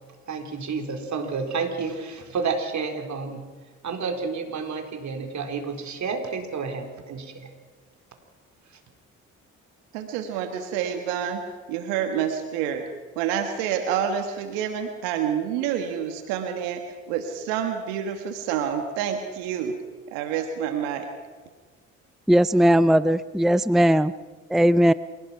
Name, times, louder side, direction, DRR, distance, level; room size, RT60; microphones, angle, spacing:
voice 1, 0.3-3.5 3.8-7.5, right 5 dB, 55° right, 5 dB, 4.3 m, -30 dB
voice 2, 9.9-11.4 11.7-12.8 13.2-19.8 20.1-21.1, right 8 dB, 85° right, 6 dB, 1.7 m, -28 dB
voice 3, 22.3-24.1 24.5-24.9, equal, ahead, 16 dB, 0.6 m, -18 dB
27.5 x 17.5 x 5.8 m, 1.4 s
hypercardioid pair, 50°, 35 cm